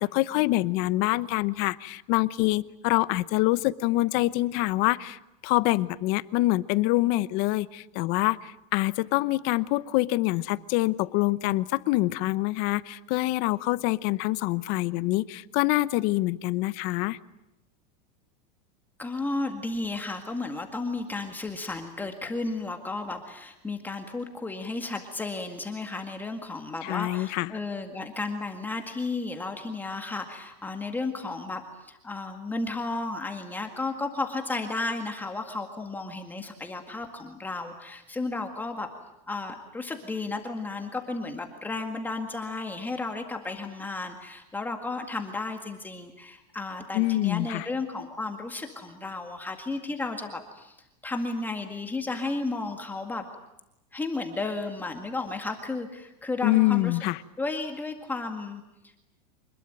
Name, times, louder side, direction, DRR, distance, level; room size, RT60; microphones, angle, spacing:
voice 1, 0.0-17.2 26.8-27.5 46.9-47.7 56.4-57.2, left 19 dB, 45° left, 17 dB, 0.9 m, -25 dB
voice 2, 19.0-38.9 39.3-50.8 51.0-53.2 53.9-57.0 57.4-58.9, left 3 dB, 10° left, 4 dB, 1.9 m, -33 dB
26.0 x 21.0 x 9.0 m, 0.90 s
supercardioid pair, 155°, 21 cm